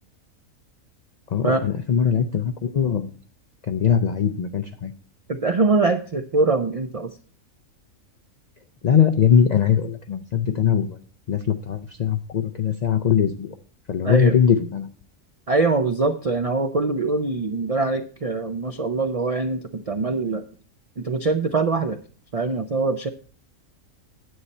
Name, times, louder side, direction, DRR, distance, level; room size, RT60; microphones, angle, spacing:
voice 1, 1.3-3.1 3.7-4.9 8.8-11.0 11.3-13.5 13.9-14.9, left 8 dB, 75° left, 7 dB, 0.3 m, -21 dB
voice 2, 5.3-7.1 14.0-14.3 15.5-20.4 21.0-22.0 22.3-23.1, right 3 dB, 65° right, 7 dB, 0.3 m, -23 dB
9.6 x 8.2 x 4.2 m, 0.41 s
omnidirectional pair, 1.4 m